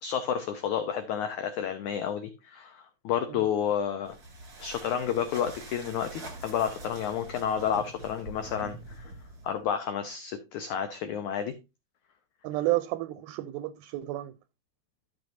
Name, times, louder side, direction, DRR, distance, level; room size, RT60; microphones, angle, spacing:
voice 1, 0.0-4.2 4.6-9.1 9.4-11.5, left 8 dB, 90° left, 1.7 m, -30 dB
sound 1, 4.0-9.6, right 2 dB, 35° right, 1.8 m, -44 dB
voice 2, 12.4-14.3, right 17 dB, 80° right, 2.4 m, -31 dB
13.5 x 6.3 x 2.6 m
omnidirectional pair, 4.5 m